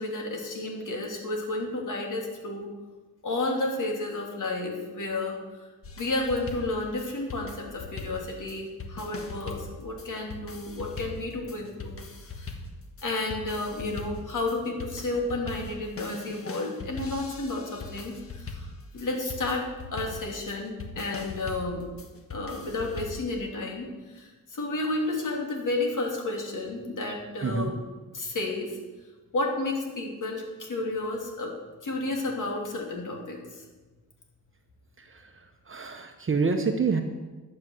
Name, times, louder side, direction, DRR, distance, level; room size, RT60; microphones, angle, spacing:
voice 1, 0.0-2.7 3.2-5.4 6.0-12.0 12.4-12.5 13.0-18.7 18.9-21.8 22.3-23.9 24.1-27.7 28.1-28.8 29.3-31.5 31.8-33.6, left 2 dB, 60° left, 0 dB, 3.1 m, -31 dB
sound 1, 5.8-23.3, left 3 dB, 40° left, 1.4 m, -41 dB
voice 2, 27.4-27.7 35.0-37.0, right 4 dB, 35° right, 5 dB, 1.0 m, -28 dB
12.0 x 7.7 x 7.7 m, 1.3 s
wide cardioid pair, 135°, 35 cm